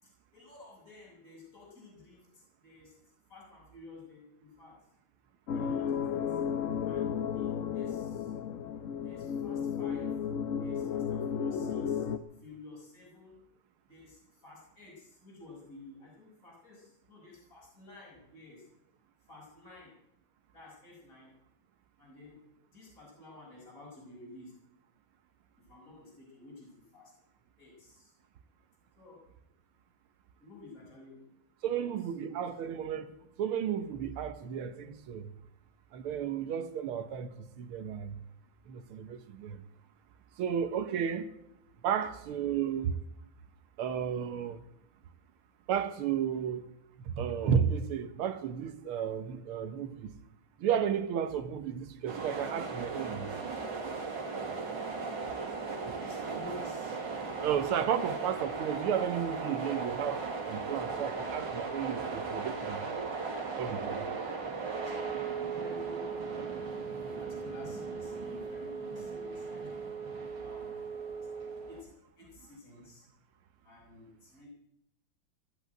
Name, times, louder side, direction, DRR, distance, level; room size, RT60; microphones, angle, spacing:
voice 1, 0.0-3.0 3.3-4.8 5.5-6.4 6.8-8.3 9.0-10.3 10.6-12.1 12.4-13.5 13.9-18.7 19.3-20.0 20.5-21.3 22.0-22.4 22.7-24.6 25.6-27.1 27.6-28.1 29.0-29.2 30.4-31.2 31.7-32.4 55.6-57.0 64.0-66.1 66.5-69.9 70.4-70.8 71.7-71.9 72.2-73.1 73.6-74.5, left 2 dB, 40° left, 5.9 m, -52 dB
sound 1, 5.5-12.2, left 7 dB, 70° left, 0.7 m, -33 dB
voice 2, 31.6-33.1 33.4-35.3 35.9-38.2 38.7-39.6 40.4-41.3 41.8-43.0 43.8-44.6 45.7-46.7 47.1-50.1 50.6-53.3 55.9-56.0 57.4-62.8 63.6-64.0, right 8 dB, 90° right, 1.9 m, -33 dB
sound 2, 52.1-71.8, right 4 dB, 60° right, 2.8 m, -38 dB
Wind instrument woodwind instrument, 64.6-71.7, right 6 dB, 5° right, 0.8 m, -40 dB
17.0 x 8.2 x 9.1 m
omnidirectional pair, 2.3 m